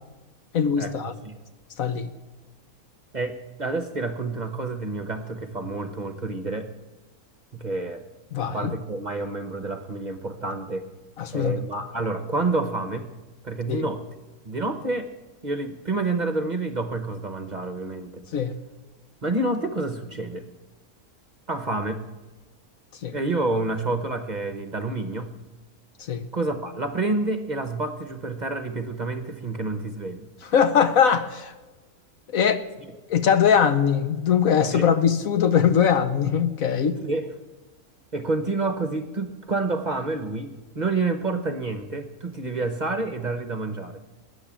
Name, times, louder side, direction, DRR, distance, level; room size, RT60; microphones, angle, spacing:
voice 1, 0.5-1.1 1.8-2.1 8.3-8.7 11.2-11.6 13.7-13.8 18.3-18.5 23.0-23.1 26.1-26.2 30.5-31.5 32.3-32.6 33.1-37.0, left 7 dB, 65° left, 10 dB, 1.3 m, -21 dB
voice 2, 3.1-6.7 7.5-8.0 8.5-10.8 11.3-13.1 13.4-14.0 14.4-15.1 15.4-18.2 19.2-20.4 21.5-22.0 23.1-25.3 26.3-30.3 34.7-34.9 37.0-37.3 38.1-44.0, right 2 dB, 35° right, 8 dB, 0.9 m, -28 dB
20.5 x 9.2 x 7.5 m, 1.2 s
omnidirectional pair, 1.6 m